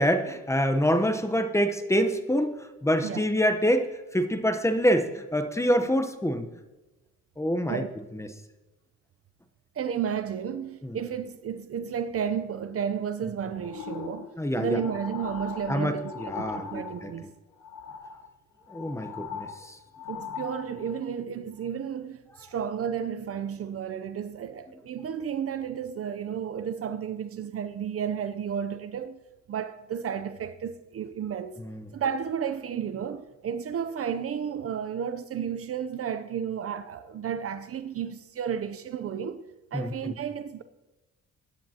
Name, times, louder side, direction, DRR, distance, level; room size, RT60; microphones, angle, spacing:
voice 1, 0.0-2.5 2.8-6.5 7.4-7.8 8.1-8.3 10.8-11.0 14.3-14.8 15.7-17.1 18.7-19.8 31.6-31.9 39.7-40.1, equal, 10° left, 0.9 m, -26 dB
voice 2, 9.8-14.3 14.6-17.3 20.1-29.2 29.5-31.6 31.9-39.4 39.7-40.6, right 8 dB, 50° right, 0.6 m, -32 dB
sound 1, 13.6-17.3 17.6-18.3 18.6-21.0 21.6-21.7, left 6 dB, 70° left, 1.2 m, -40 dB
21.0 x 10.0 x 2.9 m
cardioid pair, 90°, 30 cm